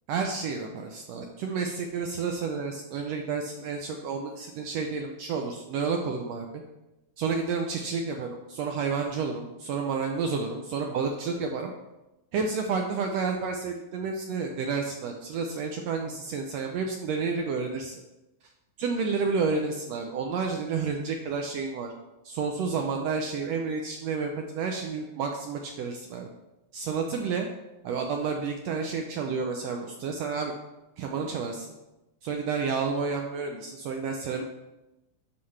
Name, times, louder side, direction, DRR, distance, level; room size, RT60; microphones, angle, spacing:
voice 1, 0.1-6.6 7.2-11.7 12.3-18.0 18.8-21.9 22.2-26.3 26.7-27.5 27.8-30.5 31.0-31.7 32.2-34.4, right 5 dB, 80° right, 3 dB, 1.5 m, -30 dB
9.6 x 5.9 x 3.2 m, 0.98 s
omnidirectional pair, 3.5 m